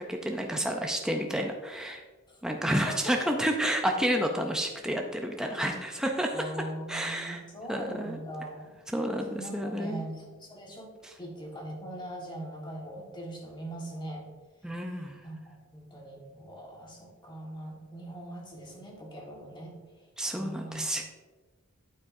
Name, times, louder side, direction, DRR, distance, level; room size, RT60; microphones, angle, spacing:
voice 1, 0.1-2.0 2.4-6.4 6.9-7.4 7.7-8.2 8.9-10.0 14.6-15.2 20.2-21.0, equal, 5° right, 2 dB, 0.5 m, -30 dB
voice 2, 2.7-3.3 6.3-8.7 9.3-10.9 11.2-14.2 15.2-20.1 20.3-20.9, right 1 dB, 20° left, -1 dB, 1.5 m, -41 dB
8.8 x 8.4 x 2.6 m, 1.3 s
head